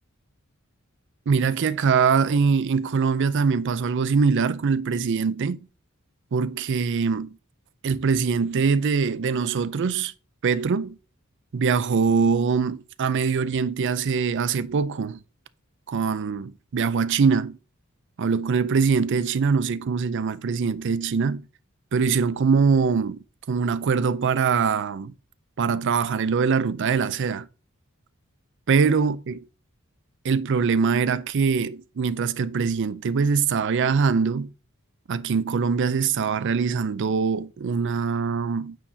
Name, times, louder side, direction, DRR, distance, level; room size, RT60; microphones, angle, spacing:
voice 1, 1.3-5.6 6.3-7.4 7.8-10.1 10.4-11.0 11.5-15.2 15.9-17.6 18.2-21.4 21.9-25.1 25.6-27.5 28.7-29.4 30.2-34.5 35.1-38.8, right 5 dB, 60° right, 0.4 m, -23 dB
8.6 x 4.7 x 2.7 m
head